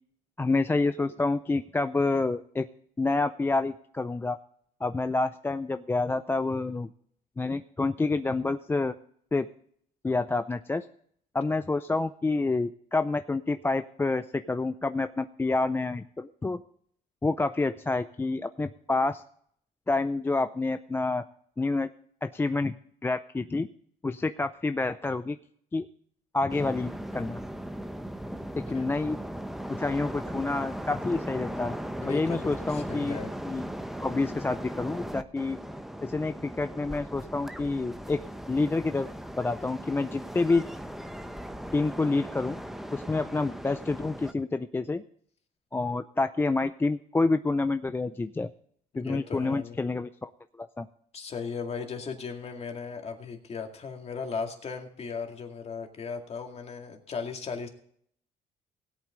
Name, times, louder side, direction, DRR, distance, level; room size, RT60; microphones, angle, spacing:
voice 1, 0.4-2.7 3.0-4.4 4.8-6.9 7.4-8.9 9.3-9.5 10.0-10.9 11.3-16.6 17.2-19.2 19.9-21.2 21.6-21.9 22.2-22.8 23.0-23.7 24.0-25.4 25.7-25.9 26.3-27.4 28.5-29.2 29.7-31.8 32.1-33.2 33.5-33.7 34.0-35.6 36.0-38.2 38.5-39.1 39.4-40.6 41.7-42.6 42.9-45.0 45.7-48.5 49.0-50.3 50.6-50.9, left 3 dB, 15° left, 10 dB, 0.4 m, -28 dB
sound 1, 26.5-44.3, equal, ahead, 0.8 m, -38 dB
voice 2, 32.0-33.3 49.0-49.8 51.1-57.7, left 5 dB, 40° left, 3 dB, 2.2 m, -37 dB
17.0 x 8.5 x 3.8 m, 0.64 s
cardioid pair, 110°, 17 cm